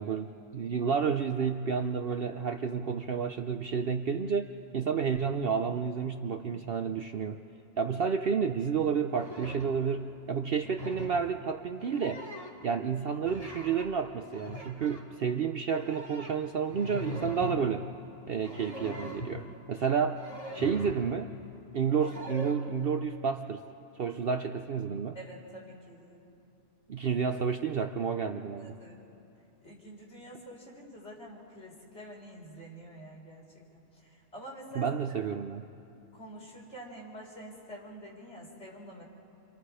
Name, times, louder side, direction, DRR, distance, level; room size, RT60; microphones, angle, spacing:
voice 1, 0.0-7.4 7.8-12.3 12.6-17.9 18.3-20.2 20.5-21.3 21.7-23.6 24.0-25.2 26.9-28.7 34.7-35.6, right 6 dB, 55° right, 6 dB, 0.7 m, -30 dB
sound 1, 9.1-9.7 10.5-11.2 11.7-12.7 13.2-13.9 14.2-15.1 15.7-17.6 18.3-19.4 20.2-21.1 22.0-22.5, equal, 15° left, 2.5 m, -41 dB
voice 2, 20.3-20.6 25.1-26.3 28.5-29.0 29.6-33.5 33.7-33.8 34.3-34.9 36.1-39.0, right 1 dB, 55° left, -3 dB, 4.5 m, -47 dB
28.5 x 25.5 x 4.9 m, 2.8 s
omnidirectional pair, 1.4 m